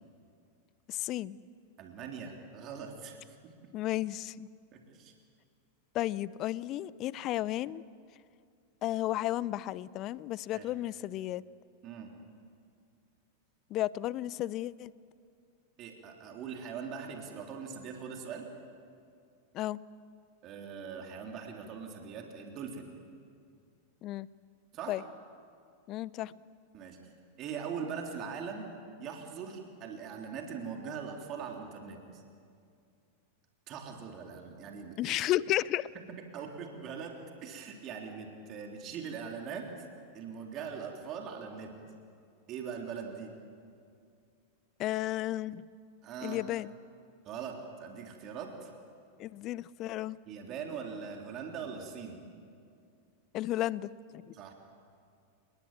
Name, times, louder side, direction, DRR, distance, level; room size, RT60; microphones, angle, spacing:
voice 1, 0.9-1.4 3.7-4.5 5.9-7.8 8.8-11.4 13.7-14.9 19.5-19.8 24.0-24.3 24.9-25.0 25.9-26.3 35.0-35.9 44.8-45.7 46.2-46.7 49.2-50.2 53.3-54.3, left 14 dB, 35° left, 21 dB, 0.6 m, -33 dB
voice 2, 1.8-3.2 3.4-3.5 4.7-5.1 10.5-10.7 11.8-12.1 15.8-18.5 20.4-22.9 24.7-25.0 26.7-27.0 27.4-28.7 29.0-32.2 33.7-35.1 35.9-36.0 36.3-39.7 40.1-41.8 42.5-43.3 46.0-46.4 47.2-48.7 50.3-52.2 54.3-54.5, right 6 dB, 35° right, 2 dB, 3.4 m, -41 dB
29.5 x 20.5 x 8.9 m, 2.3 s
figure-of-eight pair, 90°, 0 cm